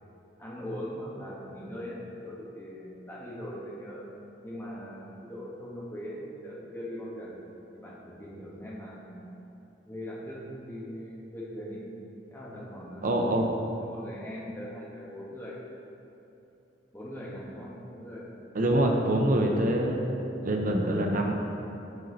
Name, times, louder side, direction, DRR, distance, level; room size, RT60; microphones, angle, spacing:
voice 1, 0.4-4.0 4.4-7.4 7.7-9.3 9.8-11.8 12.3-13.1 13.8-15.6 16.9-18.3 18.8-19.0, equal, 15° left, -6 dB, 1.2 m, -40 dB
voice 2, 13.0-13.5 18.5-21.3, right 1 dB, 50° right, 2 dB, 0.6 m, -25 dB
8.1 x 4.2 x 3.9 m, 2.8 s
head